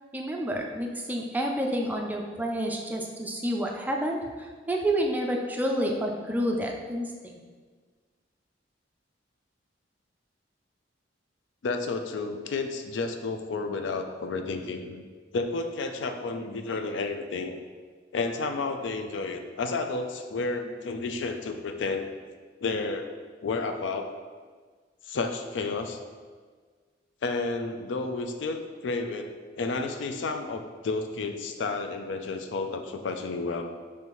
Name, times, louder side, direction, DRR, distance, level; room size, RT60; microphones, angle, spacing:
voice 1, 0.1-7.1, right 1 dB, 10° right, 1 dB, 0.4 m, -29 dB
voice 2, 11.6-15.0 15.3-17.6 18.1-22.1 22.6-23.1 23.4-24.2 25.1-26.0 27.2-33.7, left 3 dB, 70° left, 6 dB, 0.4 m, -31 dB
5.3 x 3.2 x 3.0 m, 1.5 s
head